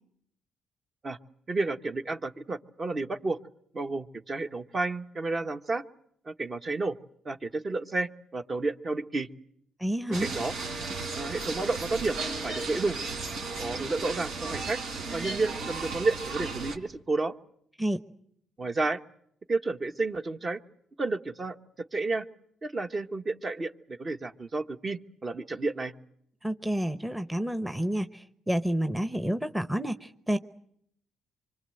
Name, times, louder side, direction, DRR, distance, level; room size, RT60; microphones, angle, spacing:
voice 1, 1.5-3.4 3.7-5.8 6.2-7.0 7.2-9.3 10.2-10.5 11.1-12.2 12.4-13.0 13.6-14.8 15.1-17.3 18.6-19.0 19.5-20.6 21.0-22.3 22.6-25.9, right 3 dB, 35° right, 7 dB, 1.3 m, -31 dB
voice 2, 9.8-10.3 17.8-18.0 26.4-30.4, right 1 dB, 5° right, 10 dB, 1.0 m, -29 dB
sound 1, 10.1-16.8, right 3 dB, 85° right, 4.2 m, -35 dB
25.5 x 24.5 x 7.8 m, 0.71 s
cardioid pair, 90°, 0 cm